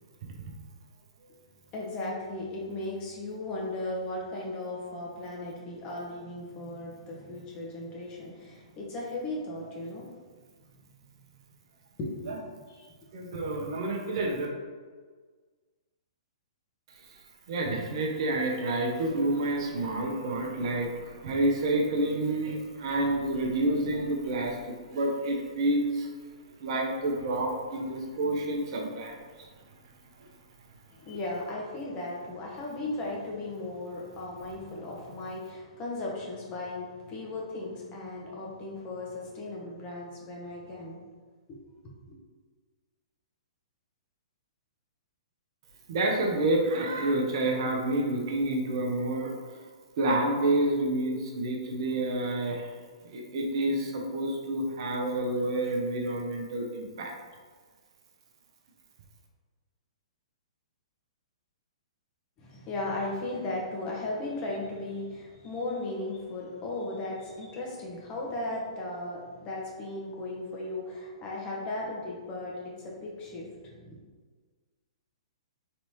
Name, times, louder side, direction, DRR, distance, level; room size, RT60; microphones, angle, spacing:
voice 1, 1.7-10.1 12.0-12.9 31.0-41.0 41.5-41.6 42.1-42.2 62.4-74.0, left 2 dB, 30° left, -3 dB, 1.1 m, -36 dB
voice 2, 13.1-14.5 17.5-24.6 24.9-26.1 26.6-29.2 45.9-49.3 50.0-52.7 53.0-57.1, right 1 dB, 55° right, 1 dB, 0.7 m, -28 dB
4.0 x 3.3 x 3.0 m, 1.5 s
figure-of-eight pair, 115°, 3 cm